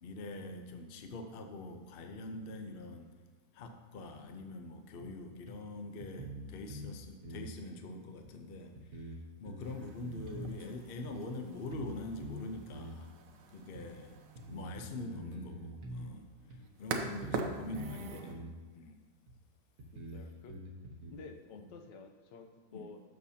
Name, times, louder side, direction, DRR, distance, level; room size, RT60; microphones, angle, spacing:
voice 1, 0.0-3.1 3.5-13.1 13.5-14.1 14.5-16.2 16.8-18.4 18.7-19.0 21.5-21.7 22.7-22.9, left 2 dB, 50° left, 5 dB, 0.6 m, -44 dB
sound 1, 5.0-5.1 5.5-5.6 6.0-7.0 7.2-7.5 8.2-8.3 8.8-10.6 11.0-11.1 11.7-12.0 12.2-13.0 13.8-13.9 14.4-16.1 16.5-16.6 17.0-18.0 18.3-18.5 19.3-19.4 19.8-21.1, right 1 dB, 60° right, 1.5 m, -45 dB
sound 2, 9.6-18.3, right 4 dB, 80° right, 1.4 m, -44 dB
voice 2, 13.8-14.2 19.9-20.6 21.1-23.0, left 4 dB, 90° left, 5 dB, 1.4 m, -52 dB
12.5 x 6.7 x 2.8 m, 1.4 s
omnidirectional pair, 1.9 m